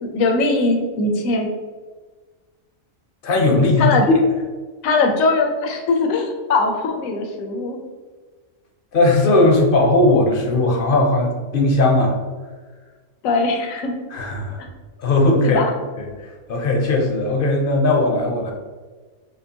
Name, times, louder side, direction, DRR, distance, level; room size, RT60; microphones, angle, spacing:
voice 1, 0.0-1.5 3.8-4.1 4.8-7.8 13.2-13.9 14.6-14.7 15.4-15.7, left 3 dB, 80° left, 3 dB, 1.1 m, -20 dB
voice 2, 3.2-3.9 8.9-12.1 14.1-14.6 15.0-15.6 16.5-18.5, left 2 dB, 50° left, 1 dB, 0.7 m, -17 dB
4.4 x 3.1 x 2.8 m, 1.4 s
omnidirectional pair, 1.4 m